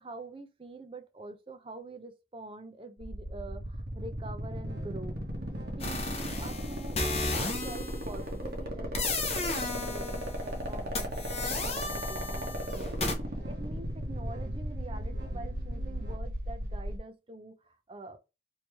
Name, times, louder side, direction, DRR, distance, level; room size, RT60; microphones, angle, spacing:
voice 1, 0.0-5.2 5.8-13.0 13.5-18.2, right 2 dB, 30° right, 0.5 m, -46 dB
sound 1, 3.0-17.0, equal, 55° right, 0.8 m, -36 dB
sound 2, 4.6-16.2, equal, 85° right, 0.9 m, -46 dB
sound 3, 5.8-8.1 8.9-10.5 10.9-13.2, left 3 dB, 35° left, 0.6 m, -34 dB
3.1 x 2.7 x 3.3 m
head